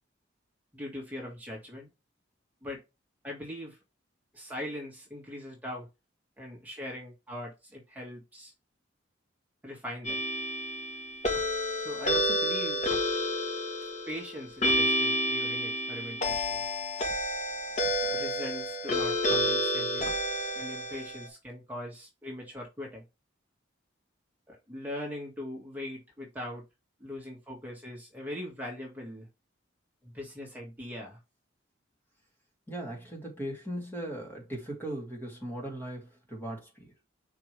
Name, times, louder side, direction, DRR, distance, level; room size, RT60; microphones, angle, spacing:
voice 1, 0.7-1.9 2.6-2.8 3.2-3.8 4.3-5.9 6.4-8.5 9.6-10.2 11.8-12.9 14.1-16.6 18.0-20.1 20.6-23.0 24.5-26.6 27.0-29.3 30.0-31.2, left 1 dB, 10° right, 2.0 m, -41 dB
sound 1, 10.0-21.3, equal, 40° left, 1.3 m, -30 dB
voice 2, 32.7-36.9, right 1 dB, 10° left, 2.7 m, -38 dB
5.9 x 4.8 x 3.4 m
head